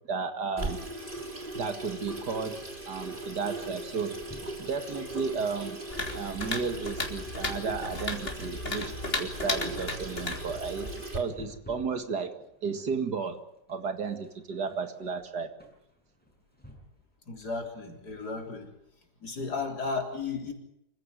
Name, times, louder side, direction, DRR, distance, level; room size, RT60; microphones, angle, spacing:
voice 1, 0.1-0.8 1.5-2.6 2.9-4.2 4.6-5.8 6.1-13.4 13.7-15.5, right 5 dB, 85° right, 2.6 m, -33 dB
Water tap faucet / Sink (filling or washing), 0.6-11.2, right 1 dB, 30° right, 3.4 m, -39 dB
sound 1, 1.1-3.0 3.3-3.5 3.8-4.6 5.2-5.8 6.1-12.0 12.4-17.1 17.4-17.5, equal, 5° left, 6.4 m, -51 dB
sound 2, 5.9-11.1, left 2 dB, 35° left, 3.6 m, -35 dB
voice 2, 17.3-18.7 19.2-20.5, left 4 dB, 75° left, 4.3 m, -34 dB
26.0 x 15.5 x 9.5 m
omnidirectional pair, 1.7 m